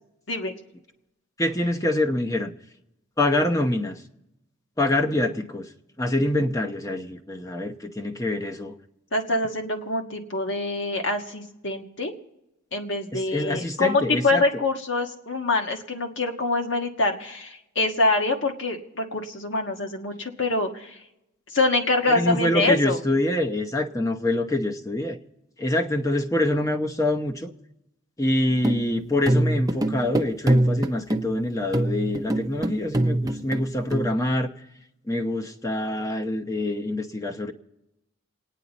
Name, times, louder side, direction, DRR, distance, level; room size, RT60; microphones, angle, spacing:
voice 1, 1.4-2.5 3.2-4.0 4.8-5.7 6.0-8.7 13.1-14.4 22.1-25.2 25.6-27.5 28.2-34.5 35.1-37.5, left 1 dB, 15° left, 4 dB, 0.8 m, -25 dB
voice 2, 9.1-12.1 12.7-21.0 21.5-23.0, left 2 dB, 65° left, 4 dB, 1.5 m, -25 dB
sound 1, 28.5-34.1, right 1 dB, 20° right, 0.7 m, -25 dB
28.0 x 9.7 x 4.1 m, 0.92 s
head